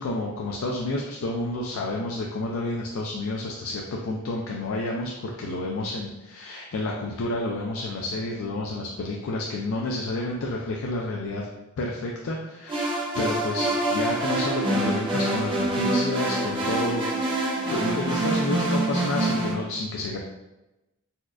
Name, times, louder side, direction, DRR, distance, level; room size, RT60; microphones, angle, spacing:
voice 1, 0.0-11.5 11.8-17.1 17.6-20.2, left 2 dB, 75° left, -1 dB, 0.4 m, -30 dB
sound 1, 12.7-19.5, right 1 dB, 25° right, 0.6 m, -26 dB
4.1 x 2.3 x 2.4 m, 0.99 s
head